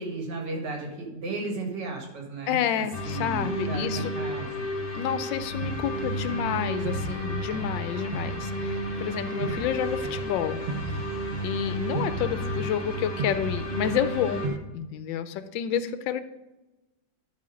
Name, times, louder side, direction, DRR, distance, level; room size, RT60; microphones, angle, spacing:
voice 1, 0.0-2.6 3.0-4.7, right 3 dB, 65° right, 1 dB, 2.4 m, -34 dB
voice 2, 2.5-4.2 4.9-10.6 11.4-14.4 14.7-16.2, left 9 dB, 85° left, 11 dB, 1.3 m, -29 dB
sound 1, 2.9-14.5, equal, 40° left, 1.4 m, -32 dB
sound 2, 5.6-14.6, right 4 dB, 90° right, 0.5 m, -37 dB
12.5 x 4.3 x 5.0 m, 1.1 s
omnidirectional pair, 2.0 m